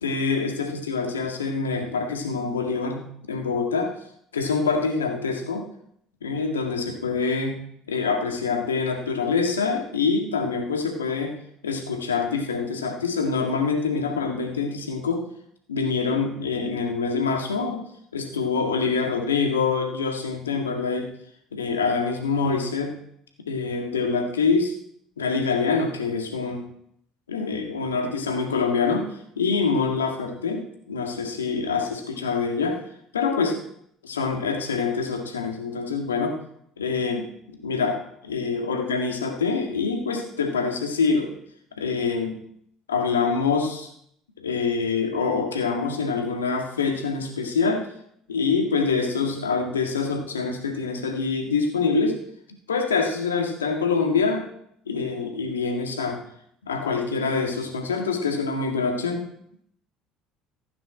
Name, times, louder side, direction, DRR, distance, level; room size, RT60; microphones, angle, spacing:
voice 1, 0.0-3.9 4.3-5.6 6.2-7.6 7.9-11.3 11.6-15.3 15.7-17.8 18.1-21.1 21.5-23.0 23.5-24.7 25.2-26.6 27.3-32.8 33.1-33.6 34.0-36.4 36.8-41.3 41.8-42.4 42.9-43.9 44.4-47.9 48.3-52.2 52.7-54.5 54.9-56.2 56.7-59.3, left 4 dB, 80° left, 3 dB, 1.9 m, -25 dB
15.0 x 9.1 x 4.4 m, 0.72 s
figure-of-eight pair, 60°, 0 cm